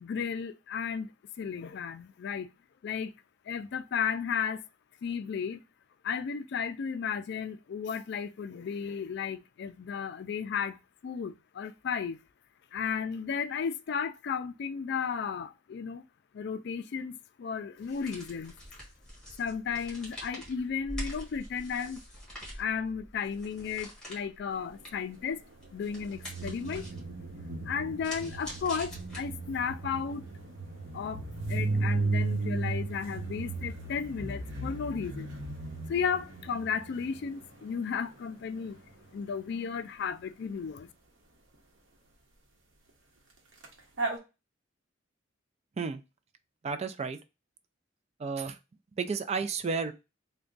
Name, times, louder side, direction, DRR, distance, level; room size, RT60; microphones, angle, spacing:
voice 1, 0.0-1.1 1.4-2.5 2.8-3.1 3.5-4.6 5.0-5.6 6.0-10.8 11.0-12.2 12.7-16.0 16.3-18.5 19.4-22.0 22.6-25.4 25.7-26.8 27.6-30.2 30.9-31.2 31.5-35.3 35.9-38.8 39.1-40.9, left 6 dB, 60° left, 0.3 m, -34 dB
sound 1, 17.8-29.6, equal, 5° left, 1.5 m, -45 dB
sound 2, 25.9-37.4 43.6-43.7 44.0-44.2, right 3 dB, 70° right, 0.9 m, -35 dB
voice 2, 46.6-47.2 48.2-48.6 49.0-49.9, right 5 dB, 35° right, 0.3 m, -32 dB
3.4 x 2.2 x 3.8 m
head